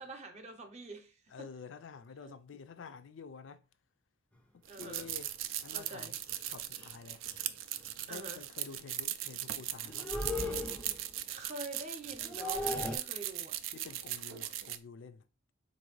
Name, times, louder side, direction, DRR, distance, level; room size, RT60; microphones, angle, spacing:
voice 1, 0.0-1.5 4.7-5.0 5.7-6.1 8.1-8.4 11.3-13.6, right 2 dB, 35° right, 0.7 m, -46 dB
voice 2, 1.3-3.6 4.7-5.3 5.6-6.2 6.5-7.3 8.0-10.1 13.7-15.2, left 5 dB, 70° left, 0.4 m, -49 dB
sound 1, 4.6-14.8, right 12 dB, 75° right, 0.3 m, -39 dB
sound 2, 4.9-5.1 6.3-6.4 6.8-7.0 7.3-7.5 9.8-11.1 12.1-13.0, left 2 dB, 5° left, 0.4 m, -37 dB
4.1 x 2.6 x 3.0 m
head